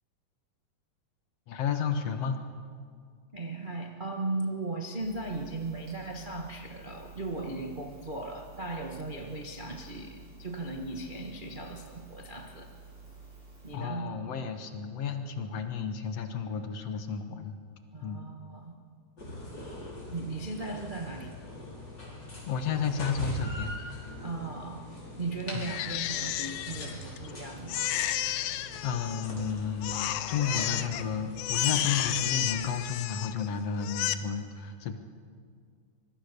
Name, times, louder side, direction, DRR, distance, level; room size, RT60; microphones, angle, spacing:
voice 1, 1.5-2.4 13.7-17.5 18.0-18.2 22.5-23.7 25.5-25.7 28.8-35.0, left 6 dB, 60° left, 7 dB, 2.2 m, -32 dB
voice 2, 3.3-12.7 13.6-14.1 17.9-18.7 20.1-21.3 24.2-24.9 25.2-28.0, right 3 dB, 75° right, 2 dB, 0.4 m, -37 dB
sound 1, 5.0-13.8, right 4 dB, 50° right, 6.9 m, -51 dB
sound 2, 19.2-32.7, left 1 dB, 35° left, 5.5 m, -42 dB
Crying sobbing, 25.6-27.3 27.7-29.5 29.8-31.0 31.4-33.5 33.8-34.1, left 13 dB, 80° left, 2.1 m, -32 dB
25.0 x 22.0 x 6.8 m, 2.1 s
omnidirectional pair, 3.5 m